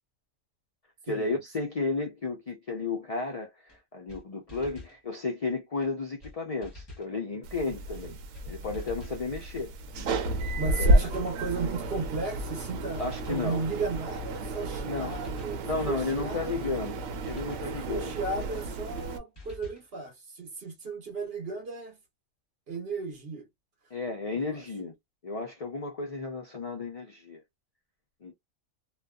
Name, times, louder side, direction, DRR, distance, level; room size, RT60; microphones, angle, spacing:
voice 1, 1.1-8.2 8.5-9.7 10.7-10.9 13.0-13.6 14.8-15.2 15.6-18.1 23.9-25.0 25.2-27.4 28.2-28.3, left 3 dB, 65° left, 0.3 m, -33 dB
sound 1, 3.7-3.8 4.1-4.2 4.5-5.0 5.8-5.9 6.2-6.3 6.6-7.1 7.9-8.0 8.3-8.5 8.7-9.2 10.1-10.2 10.4-10.6 10.9-11.3 12.2-12.3 12.6-12.7 13.0-13.5 14.3-14.4 14.7-14.8 15.1-15.6 16.4-16.5 16.8-17.0 17.2-17.7 18.6-18.7 18.9-19.1 19.3-19.8, left 2 dB, 20° left, 0.9 m, -47 dB
sound 2, 7.4-19.2, right 1 dB, 80° right, 1.0 m, -31 dB
voice 2, 10.6-16.6 17.7-22.0 22.7-23.5 24.3-24.6, right 4 dB, 50° right, 1.1 m, -35 dB
2.5 x 2.3 x 2.2 m
omnidirectional pair, 1.5 m